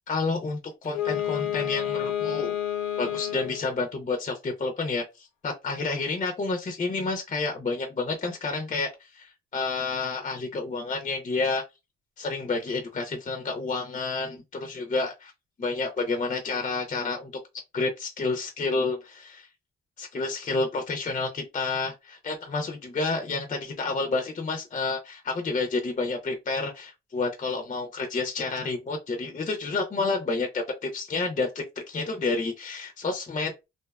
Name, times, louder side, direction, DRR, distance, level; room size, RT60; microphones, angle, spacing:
voice 1, 0.1-2.5 3.0-11.6 12.2-15.3 15.6-17.3 17.7-19.5 20.0-33.7, left 3 dB, 25° left, 0.5 m, -30 dB
Wind instrument woodwind instrument, 0.8-3.8, left 11 dB, 85° left, 0.6 m, -29 dB
2.6 x 2.2 x 2.3 m
cardioid pair, 90°, 30 cm